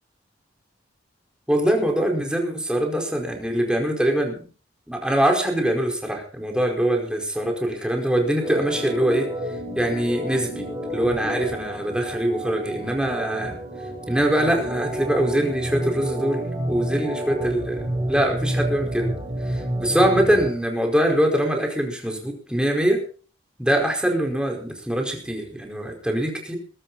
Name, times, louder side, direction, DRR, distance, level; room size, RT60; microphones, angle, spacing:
voice 1, 1.5-4.4 4.9-9.3 9.7-13.6 14.1-19.1 19.5-23.0 23.6-26.6, right 1 dB, 5° right, 1 dB, 4.8 m, -23 dB
Organ, 8.4-20.5, right 1 dB, 20° right, 4.0 m, -30 dB
21.5 x 12.5 x 4.2 m, 0.40 s
head